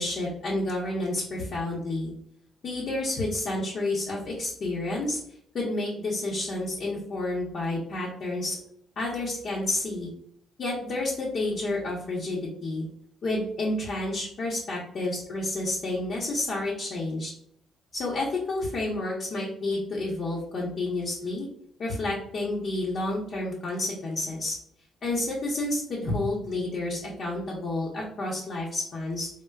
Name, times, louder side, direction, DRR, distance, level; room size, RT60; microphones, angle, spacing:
voice 1, 0.0-2.1 2.6-5.2 5.5-8.6 9.0-10.1 10.6-12.9 13.2-17.3 17.9-21.5 21.8-24.6 25.0-29.3, left 2 dB, 55° left, -5 dB, 0.8 m, -30 dB
4.4 x 2.1 x 2.3 m, 0.67 s
cardioid pair, 90°, 0 cm